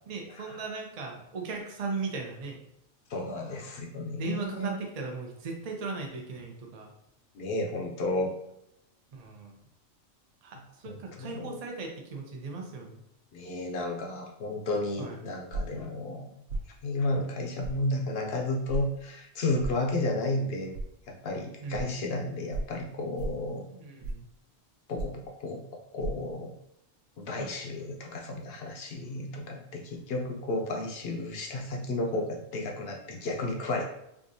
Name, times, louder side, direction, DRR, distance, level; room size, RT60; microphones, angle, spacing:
voice 1, 0.1-2.6 4.1-6.9 9.1-9.6 10.4-13.0 15.0-15.2 21.6-22.2 23.7-24.3 27.4-27.5, right 4 dB, 45° right, 1 dB, 0.5 m, -38 dB
voice 2, 3.1-4.7 7.3-8.3 10.9-11.6 13.3-16.4 16.8-20.7 21.1-23.7 24.9-26.5 27.2-33.9, left 2 dB, 60° left, 2 dB, 0.7 m, -32 dB
sound 1, 15.5-15.8 16.5-16.7 17.6-17.8 18.7-18.9 19.6-19.8 20.7-20.9 21.7-21.8 22.5-22.7 23.2-23.4 24.0-24.3 25.0-25.2 26.0-26.1, right 2 dB, 85° right, 1.0 m, -34 dB
4.6 x 2.5 x 2.6 m, 0.80 s
omnidirectional pair, 1.4 m